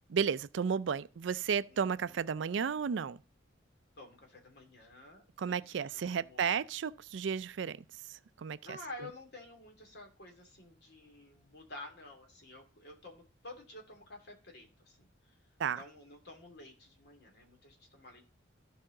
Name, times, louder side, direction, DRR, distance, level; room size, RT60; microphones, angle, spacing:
voice 1, 0.1-3.2 5.4-8.8 15.6-15.8, right 6 dB, 65° right, 0.4 m, -33 dB
voice 2, 4.0-6.4 8.6-15.0 15.7-18.3, left 2 dB, 60° left, 2.5 m, -51 dB
14.0 x 4.9 x 3.8 m
head